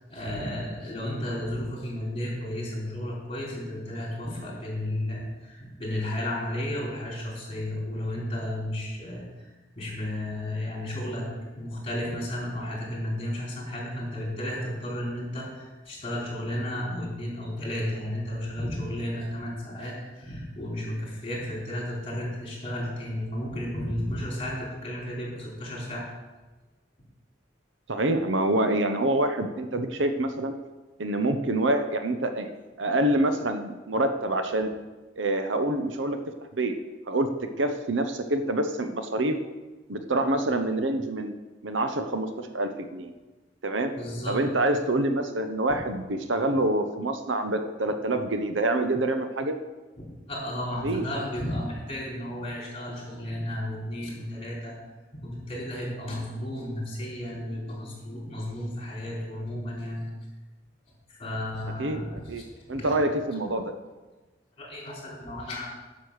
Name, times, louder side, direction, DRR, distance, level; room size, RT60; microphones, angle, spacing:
voice 1, 0.0-9.5 9.8-26.1 44.0-44.4 50.0-54.7 55.1-60.0 61.1-62.1 62.7-62.9 64.6-65.7, left 1 dB, 30° left, -3 dB, 3.8 m, -33 dB
voice 2, 27.9-30.5 31.0-32.5 32.8-34.7 35.2-36.2 36.5-36.7 37.1-37.3 37.6-39.4 39.9-41.3 41.6-43.1 43.6-43.9 44.3-49.5 50.8-51.1 61.8-62.4 62.7-63.7, right 1 dB, 80° right, 7 dB, 0.9 m, -26 dB
10.5 x 6.3 x 6.4 m, 1.2 s
head